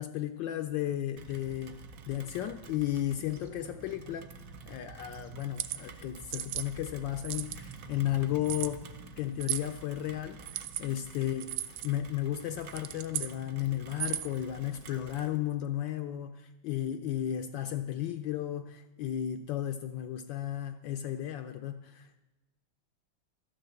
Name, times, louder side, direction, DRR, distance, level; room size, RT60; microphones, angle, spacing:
voice 1, 0.0-1.8 2.1-4.3 4.7-8.9 9.2-11.5 11.8-22.2, left 12 dB, 75° left, 7 dB, 1.1 m, -34 dB
Rain, 1.2-15.4, right 4 dB, 60° right, 0.9 m, -49 dB
sound 1, 5.4-5.8 6.3-6.7 7.2-7.7 8.4-8.7 9.4-9.7 10.4-10.8 11.4-11.9 12.6-13.3 13.9-14.4, right 13 dB, 75° right, 1.4 m, -35 dB
13.0 x 6.8 x 7.6 m, 1.1 s
omnidirectional pair, 2.4 m